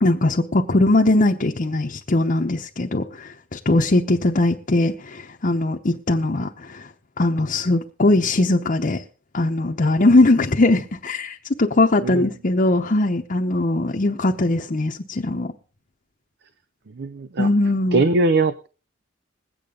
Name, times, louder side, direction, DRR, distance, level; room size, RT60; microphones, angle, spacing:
voice 1, 0.0-6.9 7.2-9.0 9.3-15.5 17.4-18.0, left 2 dB, 40° left, 1 dB, 0.9 m, -20 dB
voice 2, 17.0-17.5 17.9-18.7, right 3 dB, 55° right, 14 dB, 0.5 m, -20 dB
21.5 x 8.7 x 3.8 m, 0.37 s
head